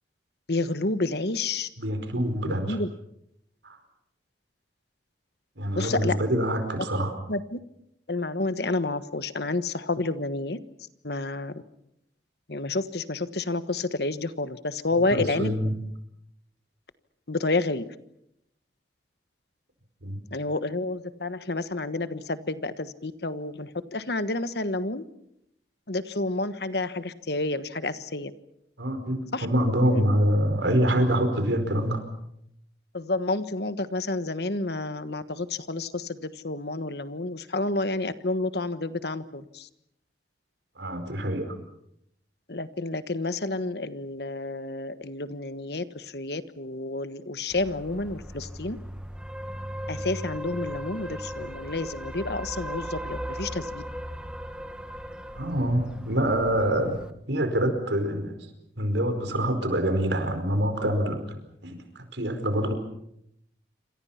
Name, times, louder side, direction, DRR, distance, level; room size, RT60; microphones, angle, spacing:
voice 1, 0.5-1.7 2.4-2.9 5.8-6.2 7.3-7.6 8.1-10.6 11.0-11.6 12.5-15.5 17.3-17.9 20.3-25.0 25.9-28.3 29.3-29.5 29.9-30.0 32.9-39.7 42.5-48.8 49.9-53.8, left 2 dB, 60° left, 12 dB, 1.4 m, -30 dB
voice 2, 1.8-2.8 3.6-3.8 5.6-7.1 15.1-15.7 20.0-20.2 28.8-32.0 40.8-41.5 55.3-57.0 57.3-58.3 58.8-62.7, right 1 dB, 80° right, 8 dB, 4.9 m, -26 dB
sound 1, 47.5-57.1, equal, 5° right, 1.6 m, -37 dB
28.0 x 25.5 x 5.9 m, 0.77 s
head